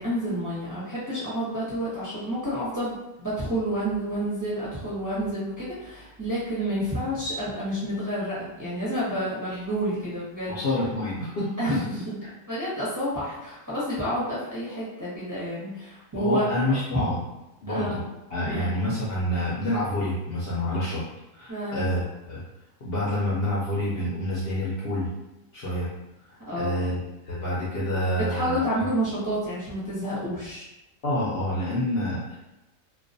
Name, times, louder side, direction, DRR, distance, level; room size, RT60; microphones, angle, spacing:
voice 1, 0.0-10.6 11.6-12.2 12.5-16.8 17.7-18.0 18.5-18.7 21.5-21.9 26.4-26.8 28.3-30.7, equal, 20° right, -9 dB, 0.6 m, -29 dB
voice 2, 10.5-11.8 16.1-17.2 17.6-18.0 18.3-21.0 21.3-22.4 22.8-25.1 25.5-25.9 26.3-27.0 27.3-28.7 31.0-32.4, left 1 dB, 60° left, -7 dB, 0.7 m, -28 dB
2.3 x 2.3 x 2.5 m, 0.97 s
omnidirectional pair, 1.4 m